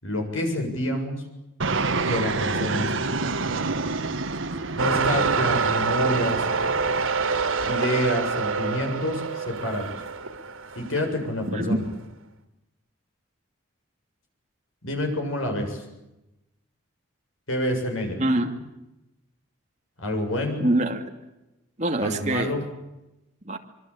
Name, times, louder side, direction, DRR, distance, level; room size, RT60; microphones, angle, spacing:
voice 1, 0.0-1.2 2.0-3.0 4.7-6.5 7.6-9.9 10.8-11.8 14.8-15.8 17.5-18.2 20.0-20.6 22.0-22.6, left 1 dB, 80° left, 4 dB, 7.6 m, -28 dB
Fixed-wing aircraft airplane, 1.6-7.0, right 3 dB, 70° right, 1.5 m, -28 dB
sound 1, 4.8-11.2 11.9-12.0, right 5 dB, 90° right, 2.8 m, -26 dB
voice 2, 11.5-11.8 18.2-18.5 20.6-21.1 21.8-22.6 23.4-23.6, right 1 dB, 35° right, 3 dB, 2.6 m, -24 dB
25.5 x 24.0 x 8.8 m, 0.95 s
head